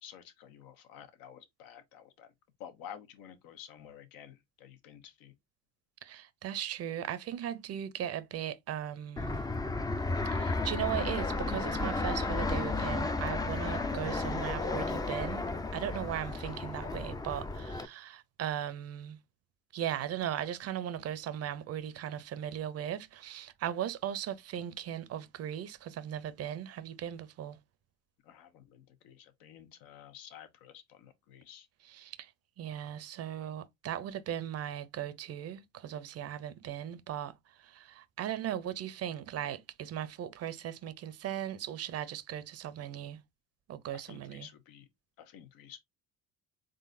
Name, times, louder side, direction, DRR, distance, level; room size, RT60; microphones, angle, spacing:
voice 1, 0.0-2.3 2.6-5.3 16.1-16.4 28.3-31.7 43.9-44.8 45.2-45.8, left 9 dB, 80° left, 1.0 m, -51 dB
voice 2, 6.0-9.4 10.3-15.5 15.7-19.2 19.7-27.6 31.8-32.3 32.6-37.3 37.6-43.2 43.7-44.5, right 10 dB, 45° right, 0.6 m, -38 dB
Fixed-wing aircraft airplane, 9.2-17.8, left 3 dB, 10° left, 0.4 m, -33 dB
3.8 x 3.8 x 2.5 m
cardioid pair, 120°, 34 cm